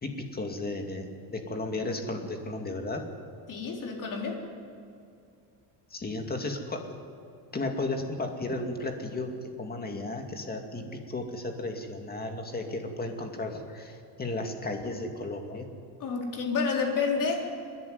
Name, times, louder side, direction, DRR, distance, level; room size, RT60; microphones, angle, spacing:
voice 1, 0.0-3.1 5.9-7.0 7.5-15.7, left 2 dB, 20° left, 4 dB, 2.3 m, -34 dB
voice 2, 3.5-4.4 16.0-17.4, left 5 dB, 45° left, 0 dB, 4.1 m, -29 dB
28.0 x 11.0 x 9.6 m, 2.5 s
cardioid pair, 130°, 44 cm